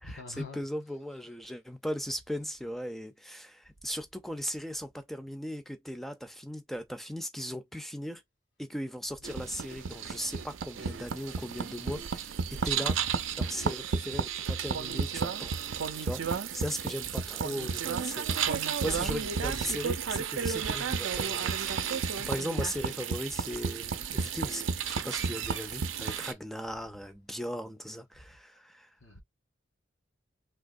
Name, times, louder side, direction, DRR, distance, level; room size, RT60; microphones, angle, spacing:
voice 1, 0.0-0.7 1.0-1.2 2.2-2.3 9.1-9.5 13.0-13.4 15.8-15.9 17.0-17.3 19.3-19.9 21.6-21.8 24.7-24.9 26.3-26.4 28.1-28.6 29.0-29.2, left 2 dB, 65° left, 1.4 m, -48 dB
voice 2, 0.6-8.2 8.6-13.0 13.4-28.9, equal, ahead, 0.4 m, -38 dB
sound 1, 9.2-26.3, right 6 dB, 80° right, 0.5 m, -32 dB
3.5 x 2.9 x 2.4 m
head